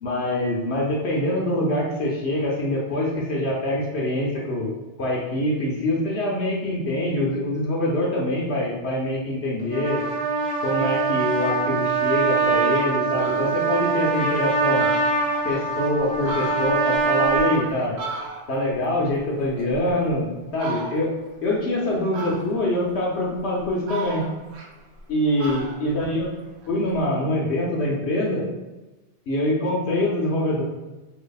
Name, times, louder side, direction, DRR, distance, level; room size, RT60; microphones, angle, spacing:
voice 1, 0.0-4.7 5.0-10.0 10.6-14.9 15.4-18.0 18.5-21.1 21.4-24.2 25.1-26.3 26.7-28.4 29.3-30.6, left 1 dB, 70° left, -3 dB, 1.0 m, -24 dB
Trumpet, 9.6-17.6, right 4 dB, 45° right, 0.6 m, -23 dB
Fowl, 12.6-12.7 13.0-13.6 14.1-14.2 14.5-14.6 14.8-15.7 16.1-18.7 19.1-20.1 20.5-21.2 22.1-22.8 23.3-25.1 25.4-27.0, right 3 dB, 75° right, 0.9 m, -36 dB
3.0 x 2.8 x 3.9 m, 1.1 s
omnidirectional pair, 1.1 m